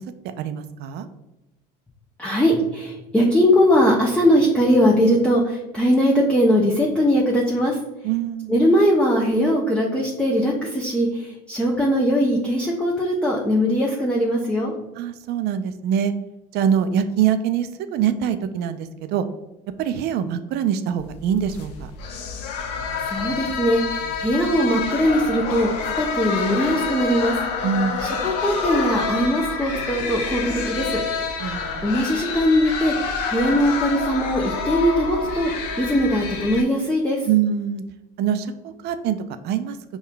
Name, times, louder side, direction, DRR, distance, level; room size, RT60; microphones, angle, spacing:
voice 1, 0.4-1.1 8.0-8.6 15.0-16.1 16.5-19.2 19.8-21.9 27.6-28.1 31.4-32.0 37.3-37.8 38.2-39.2 39.4-39.8, right 8 dB, 55° right, 10 dB, 0.4 m, -24 dB
voice 2, 2.2-7.8 8.5-14.7 23.1-27.3 28.0-31.0 31.8-32.9 33.3-35.5 35.8-37.2, equal, 5° left, -4 dB, 0.6 m, -20 dB
sound 1, 21.0-36.6, left 5 dB, 80° left, 0.5 m, -28 dB
5.5 x 2.3 x 2.2 m, 0.97 s
supercardioid pair, 90°, 21 cm